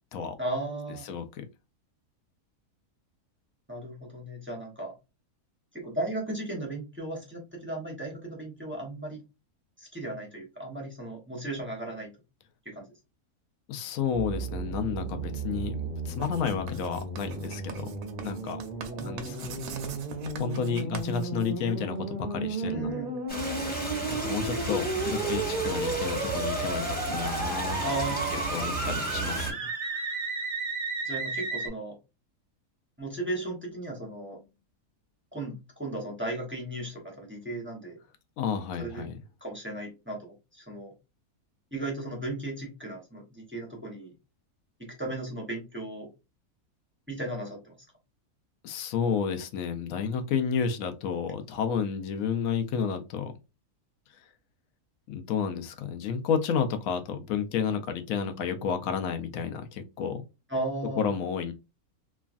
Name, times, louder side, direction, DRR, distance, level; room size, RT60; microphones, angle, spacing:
voice 1, 0.4-1.1 3.7-4.9 5.7-9.2 9.8-12.1 12.6-12.9 18.9-19.4 22.7-23.1 27.8-29.0 31.0-32.0 33.0-34.4 35.3-38.0 38.8-39.1 39.4-40.9 41.7-44.1 44.8-46.1 47.1-47.7 60.5-61.1, right 2 dB, 10° right, -2 dB, 0.6 m, -36 dB
voice 2, 1.0-1.4 13.7-17.9 18.2-18.6 19.0-19.6 20.4-23.1 23.5-27.8 28.3-29.7 38.4-39.2 48.6-53.3 55.1-60.2 61.0-61.5, left 6 dB, 70° left, 7 dB, 0.9 m, -31 dB
sound 1, 14.1-31.7, right 3 dB, 50° right, 0.6 m, -33 dB
Writing, 16.1-22.0, right 7 dB, 80° right, 1.1 m, -43 dB
Stream, 23.3-29.5, right 2 dB, 5° left, 1.0 m, -34 dB
3.1 x 2.3 x 2.4 m, 0.27 s
omnidirectional pair, 1.6 m